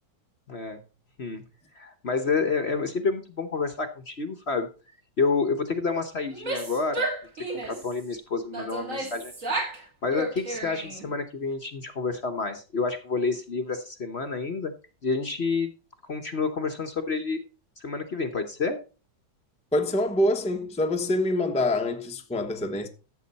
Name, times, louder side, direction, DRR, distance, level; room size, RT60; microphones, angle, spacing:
voice 1, 0.5-0.8 1.2-1.4 1.7-4.7 5.2-7.1 7.3-9.5 9.8-14.7 15.0-15.7 16.0-17.4 17.8-18.8, left 4 dB, 45° left, 1.1 m, -29 dB
Female speech woman speaking / Yell, 6.3-7.9 8.5-9.8 10.1-11.1, right 2 dB, 45° right, 2.9 m, -32 dB
voice 2, 19.7-22.9, left 1 dB, 5° left, 0.8 m, -25 dB
13.5 x 7.8 x 4.1 m
omnidirectional pair, 1.9 m